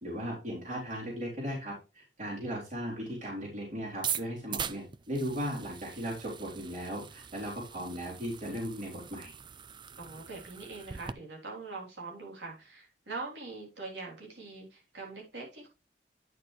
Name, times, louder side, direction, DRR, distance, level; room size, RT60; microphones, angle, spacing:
voice 1, 0.0-9.3, equal, 45° right, -4 dB, 3.9 m, -37 dB
sound 1, 3.9-11.1, right 8 dB, 25° right, 0.4 m, -41 dB
voice 2, 10.0-15.7, right 3 dB, 80° right, -1 dB, 3.5 m, -43 dB
9.5 x 6.5 x 3.2 m, 0.29 s
head